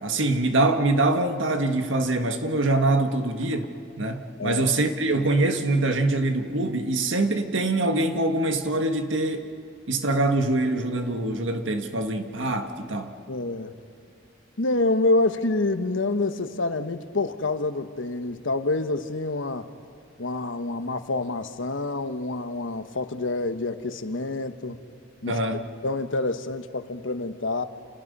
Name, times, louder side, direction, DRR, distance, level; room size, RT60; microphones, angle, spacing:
voice 1, 0.0-3.7 4.0-9.5 9.9-13.1 25.3-25.7, right 2 dB, 80° right, 1.8 m, -24 dB
voice 2, 13.3-13.7 14.6-19.7 20.2-24.8 25.2-25.4 25.8-27.6, left 2 dB, 90° left, 1.2 m, -27 dB
30.0 x 28.5 x 5.5 m
head